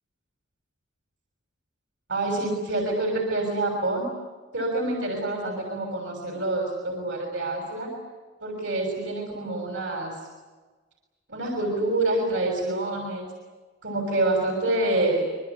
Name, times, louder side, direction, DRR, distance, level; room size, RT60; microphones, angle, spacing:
voice 1, 2.1-4.1 4.5-7.9 8.4-10.2 11.3-13.3 13.8-15.3, right 2 dB, 85° right, 1 dB, 6.6 m, -27 dB
26.5 x 24.5 x 8.5 m, 1.3 s
head